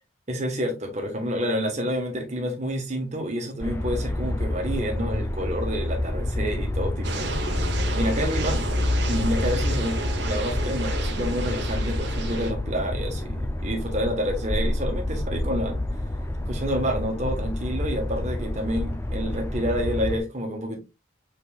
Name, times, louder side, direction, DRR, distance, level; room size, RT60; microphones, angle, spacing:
voice 1, 0.3-7.4 7.9-8.6 9.1-15.8 16.4-20.8, equal, 35° right, 1.3 m, -29 dB
sound 1, 3.6-20.2, left 1 dB, 10° left, 0.5 m, -28 dB
sound 2, 7.0-12.5, right 2 dB, 55° right, 0.9 m, -32 dB
5.2 x 4.2 x 2.4 m
head